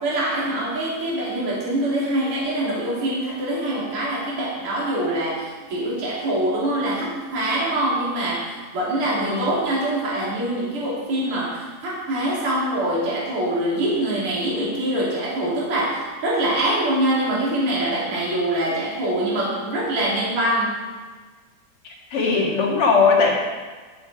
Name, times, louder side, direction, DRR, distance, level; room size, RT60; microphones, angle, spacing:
voice 1, 0.0-20.8, right 1 dB, 35° right, -7 dB, 3.5 m, -24 dB
voice 2, 9.1-9.5 21.8-23.3, left 4 dB, 45° left, -3 dB, 2.2 m, -19 dB
11.0 x 7.9 x 4.8 m, 1.4 s
omnidirectional pair, 4.6 m